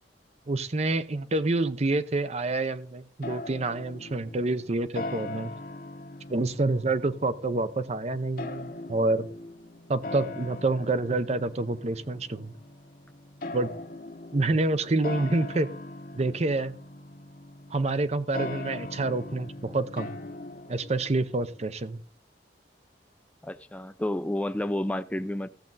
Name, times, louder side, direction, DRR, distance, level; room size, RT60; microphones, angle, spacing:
voice 1, 0.5-5.5 6.3-9.3 9.9-12.5 13.5-13.7 14.3-15.7 16.1-16.8 17.7-20.2 20.7-22.0, right 2 dB, 40° right, 0.7 m, -27 dB
sound 1, 3.2-21.7, left 2 dB, 55° left, 1.0 m, -41 dB
voice 2, 23.4-25.5, left 1 dB, 10° left, 0.5 m, -30 dB
14.5 x 7.4 x 4.0 m
head